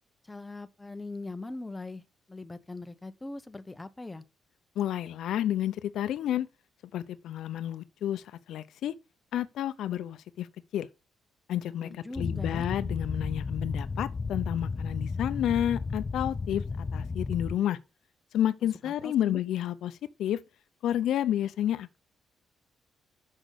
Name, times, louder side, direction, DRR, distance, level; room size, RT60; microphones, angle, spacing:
voice 1, 0.2-2.0 2.3-4.2 11.8-12.7 18.8-19.4, left 2 dB, 10° left, 0.7 m, -41 dB
voice 2, 4.8-6.5 6.9-8.9 9.3-10.5 10.7-10.9 11.5-17.8 18.3-20.4 20.8-22.0, left 11 dB, 80° left, 0.6 m, -30 dB
sound 1, 12.1-17.6, left 4 dB, 30° left, 0.3 m, -33 dB
6.5 x 6.2 x 6.5 m
cardioid pair, 135°, 0 cm